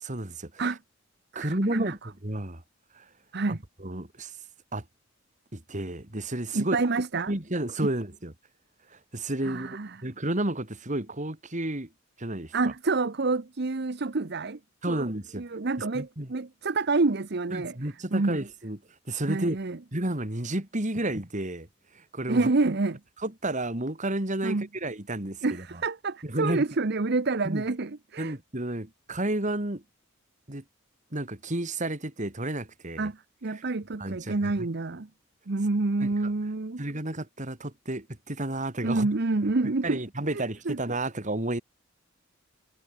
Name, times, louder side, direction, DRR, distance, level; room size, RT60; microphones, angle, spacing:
voice 1, 0.0-0.6 1.3-2.6 2.9-3.0 3.5-4.3 4.7-4.8 5.5-6.8 7.3-8.3 8.9-11.9 12.2-12.5 14.8-15.4 15.9-16.3 17.5-18.8 19.1-19.6 19.9-21.7 21.9-22.5 23.2-25.8 26.2-26.6 27.4-27.6 28.2-29.8 30.5-30.6 31.1-33.1 34.0-34.7 36.0-36.1 36.8-39.1 39.8-41.6, right 1 dB, 40° right, 2.9 m, -31 dB
voice 2, 1.3-1.9 3.3-3.6 6.5-7.3 9.4-10.0 12.5-14.6 14.9-15.1 15.4-17.7 18.1-18.4 19.3-19.8 22.3-23.0 24.4-24.7 25.4-28.3 33.0-35.1 35.5-36.8 38.8-40.0 40.3-40.8, right 3 dB, 55° right, 0.9 m, -28 dB
head